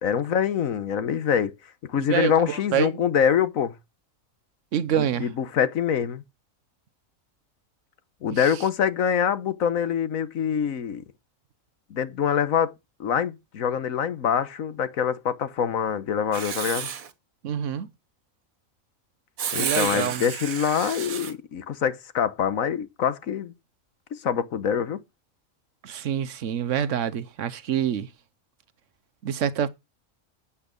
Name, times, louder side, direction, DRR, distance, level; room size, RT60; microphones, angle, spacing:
voice 1, 0.0-1.6 1.9-3.7 5.0-6.2 8.2-11.0 11.9-12.7 13.0-16.9 19.5-23.5 24.1-25.0, left 8 dB, 80° left, 1.5 m, -25 dB
voice 2, 2.0-3.0 4.7-5.3 8.3-8.5 17.4-17.9 19.6-20.2 25.8-28.1 29.2-29.7, right 9 dB, 65° right, 1.1 m, -26 dB
Writing, 16.3-17.1 19.4-21.3, right 8 dB, 85° right, 1.6 m, -31 dB
8.4 x 8.4 x 5.2 m
omnidirectional pair, 1.4 m